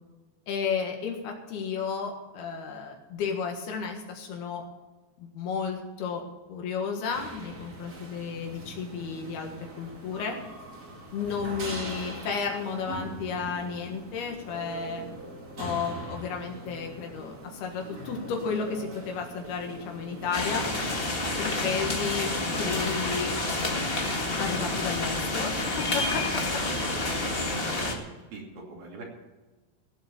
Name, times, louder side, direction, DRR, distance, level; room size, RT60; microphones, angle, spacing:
voice 1, 0.5-4.6 5.2-6.2 6.5-9.5 9.8-10.4 11.1-15.1 15.6-20.6 21.4-23.3 24.4-26.2, left 6 dB, 80° left, 2 dB, 3.6 m, -32 dB
sound 1, 7.1-22.5, right 2 dB, 30° right, 2.1 m, -42 dB
sound 2, 20.3-27.9, left 2 dB, 50° left, 0.7 m, -29 dB
voice 2, 27.2-28.0 28.3-29.0, right 3 dB, 70° right, -1 dB, 4.5 m, -43 dB
16.5 x 8.1 x 7.1 m, 1.2 s
omnidirectional pair, 4.4 m